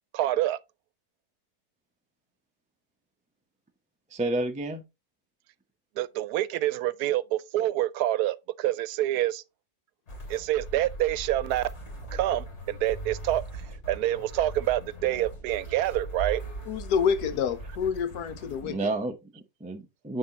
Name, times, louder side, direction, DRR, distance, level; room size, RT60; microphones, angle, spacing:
voice 1, 0.1-0.6 6.0-9.4 10.3-11.7 12.1-13.4 13.9-16.4, right 14 dB, 85° right, 1.1 m, -27 dB
voice 2, 4.1-4.8 18.6-20.2, right 2 dB, 5° right, 0.6 m, -31 dB
sound 1, 10.1-18.7, right 2 dB, 45° left, 3.1 m, -40 dB
voice 3, 16.7-18.8, left 7 dB, 90° left, 1.4 m, -27 dB
9.4 x 4.2 x 2.9 m
omnidirectional pair, 1.6 m